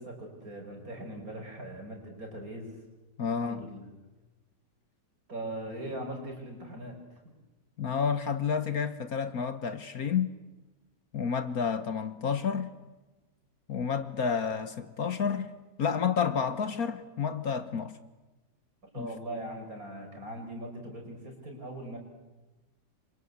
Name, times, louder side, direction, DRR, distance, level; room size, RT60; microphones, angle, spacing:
voice 1, 0.0-2.7 3.4-3.9 5.3-7.0 18.9-22.0, right 1 dB, 50° right, 6.0 m, -40 dB
voice 2, 3.2-3.6 7.8-10.3 11.1-12.7 13.7-15.5 15.8-17.9 19.0-19.1, left 6 dB, 55° left, 1.5 m, -30 dB
28.0 x 24.5 x 8.3 m
omnidirectional pair, 1.9 m